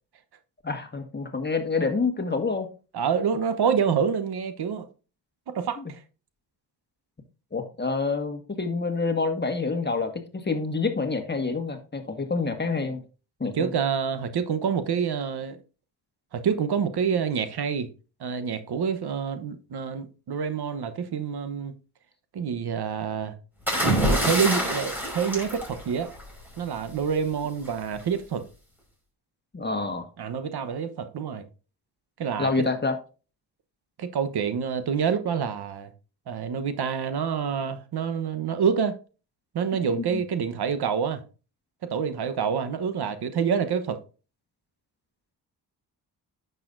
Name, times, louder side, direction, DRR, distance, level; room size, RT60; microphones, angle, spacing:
voice 1, 0.6-2.7 7.5-13.0 13.4-13.7 29.5-30.1 32.4-33.0 40.1-40.2, left 4 dB, 25° left, 1.6 m, -27 dB
voice 2, 2.9-4.9 5.5-6.0 13.5-15.6 16.3-17.9 18.2-21.8 22.3-23.3 24.1-26.1 26.6-28.4 30.2-31.5 32.2-32.5 34.0-35.9 36.3-39.0 39.5-41.2 41.9-44.0, right 7 dB, 65° right, 1.0 m, -27 dB
sound 1, 23.7-26.4 27.6-27.9, right 1 dB, 5° right, 5.0 m, -26 dB
10.0 x 6.8 x 2.6 m
cardioid pair, 75°, 42 cm